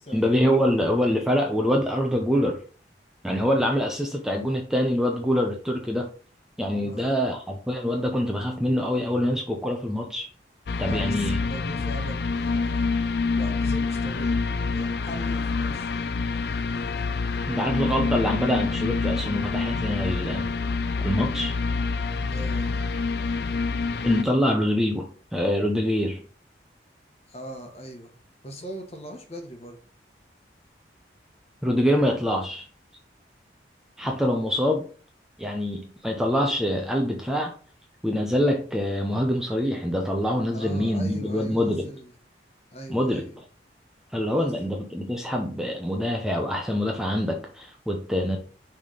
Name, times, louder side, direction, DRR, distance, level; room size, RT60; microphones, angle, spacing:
voice 1, 0.1-2.6 3.2-6.1 6.6-10.3 10.8-11.4 17.5-20.5 21.0-21.5 24.0-26.2 31.6-32.7 34.0-34.9 35.4-37.5 38.0-41.9 42.9-43.4 44.1-48.4, equal, 5° right, 0.7 m, -25 dB
voice 2, 6.8-7.2 10.8-12.9 13.3-14.4 14.7-15.9 16.3-17.0 22.3-22.7 27.3-28.1 28.4-29.8 40.5-42.1 42.7-43.3 44.4-44.5, equal, 35° left, 1.3 m, -40 dB
sound 1, 10.7-24.2, left 4 dB, 60° left, 0.4 m, -27 dB
6.3 x 3.5 x 5.1 m
head